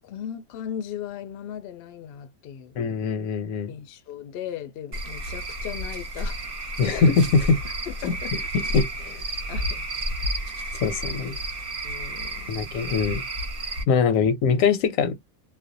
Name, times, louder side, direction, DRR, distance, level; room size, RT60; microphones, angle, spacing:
voice 1, 0.0-2.8 3.7-6.4 6.8-6.9 7.9-8.5 9.5-9.8 11.8-12.7 13.9-14.3, left 9 dB, 65° left, 0.6 m, -37 dB
voice 2, 2.8-3.7 6.8-7.6 8.0-9.2 10.8-11.4 12.5-13.2 13.9-15.1, left 5 dB, 85° left, 1.0 m, -23 dB
Cricket / Frog, 4.9-13.8, right 1 dB, 50° right, 0.8 m, -31 dB
2.4 x 2.1 x 2.5 m
omnidirectional pair, 1.4 m